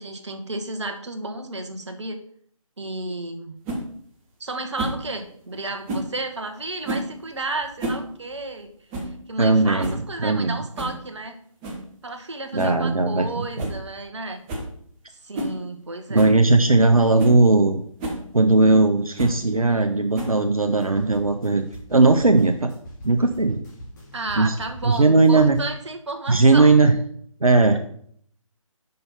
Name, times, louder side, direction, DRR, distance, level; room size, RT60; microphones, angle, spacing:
voice 1, 0.0-2.2 2.8-3.6 4.4-8.7 9.0-11.4 12.0-14.4 15.2-16.3 24.1-26.7, right 2 dB, 55° right, 6 dB, 1.1 m, -32 dB
sound 1, 3.6-3.8 4.8-5.0 5.9-6.1 6.8-7.1 7.6-8.1 8.3-8.4 8.9-9.1 9.5-9.6 9.8-10.1 10.8-11.0 11.6-11.8 12.6-12.8 13.2-13.3 13.6-13.8 14.1-14.2 14.5-14.7 15.3-15.6 16.1-16.4 16.9-17.0 17.2-17.4 18.0-18.2 19.2-19.4 20.1-20.5, right 1 dB, 5° right, 0.5 m, -30 dB
voice 2, 9.4-10.6 12.5-13.3 13.6-13.7 16.1-17.8 18.3-22.7 23.0-23.6 24.4-24.5 24.8-25.6 26.3-26.9 27.4-27.8, right 3 dB, 80° right, 5 dB, 0.8 m, -18 dB
sound 2, 20.5-25.6, equal, 30° left, 2.7 m, -43 dB
5.5 x 5.4 x 5.7 m, 0.62 s
figure-of-eight pair, 150°, 18 cm